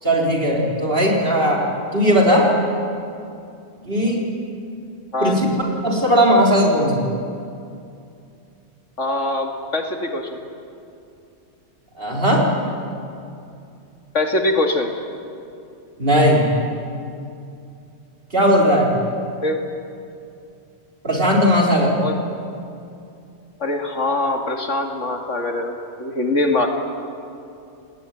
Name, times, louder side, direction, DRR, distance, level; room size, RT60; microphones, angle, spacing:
voice 1, 0.0-1.6 1.9-2.5 3.8-4.2 5.2-5.5 5.8-7.0 12.0-12.4 16.0-16.5 18.3-18.9 21.0-21.9, equal, 45° right, -2 dB, 4.7 m, -17 dB
voice 2, 9.0-10.4 14.1-14.9 19.4-19.6 22.0-22.3 23.6-25.7 26.0-26.7, left 2 dB, 75° left, 3 dB, 2.7 m, -22 dB
29.0 x 19.5 x 9.4 m, 2.6 s
omnidirectional pair, 1.3 m